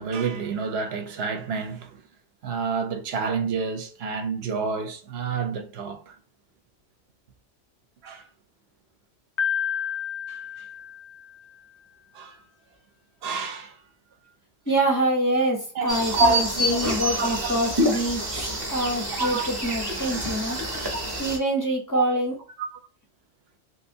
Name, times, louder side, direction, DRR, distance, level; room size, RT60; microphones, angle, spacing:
voice 1, 0.0-2.0 2.4-6.1 8.0-8.3 10.3-10.4 12.1-12.4 13.2-13.8 15.7-16.8 17.2-17.6 18.2-18.6 19.2-19.5 21.9-22.0 22.6-22.7, right 4 dB, 60° right, 0.7 m, -28 dB
Piano, 9.4-11.5, left 8 dB, 85° left, 0.3 m, -30 dB
voice 2, 14.7-22.4, right 1 dB, 25° left, 0.4 m, -26 dB
sound 1, 15.9-21.4, equal, 25° right, 0.5 m, -28 dB
3.2 x 2.7 x 2.6 m
omnidirectional pair, 1.3 m